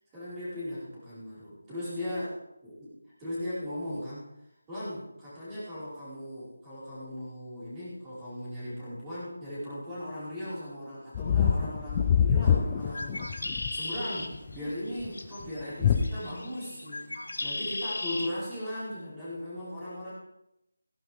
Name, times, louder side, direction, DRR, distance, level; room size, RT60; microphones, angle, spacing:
voice 1, 0.1-2.9 3.2-4.3 4.7-13.3 13.5-17.0 17.4-20.1, left 1 dB, 10° right, -11 dB, 5.1 m, -38 dB
sound 1, 11.1-13.7 14.3-14.7 15.0-15.1 15.8-16.1, left 8 dB, 15° left, 0.5 m, -25 dB
Bird, 12.8-18.3, left 2 dB, 75° left, 1.5 m, -37 dB
16.5 x 11.5 x 3.6 m, 0.86 s
figure-of-eight pair, 175°, 0 cm